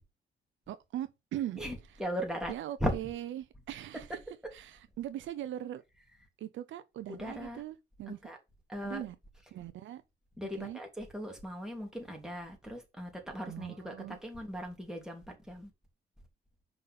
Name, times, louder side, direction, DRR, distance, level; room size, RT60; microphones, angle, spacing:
voice 1, 0.7-1.6 2.5-4.2 4.5-5.8 6.4-8.2 8.8-9.2 9.5-10.0 10.6-10.8 13.4-14.2, right 12 dB, 75° right, 0.7 m, -40 dB
voice 2, 1.6-2.5 2.8-2.9 7.1-7.6 8.1-8.4 8.7-9.0 10.4-15.7, equal, 5° right, 2.7 m, -38 dB
5.4 x 4.0 x 5.8 m
cardioid pair, 90°, 20 cm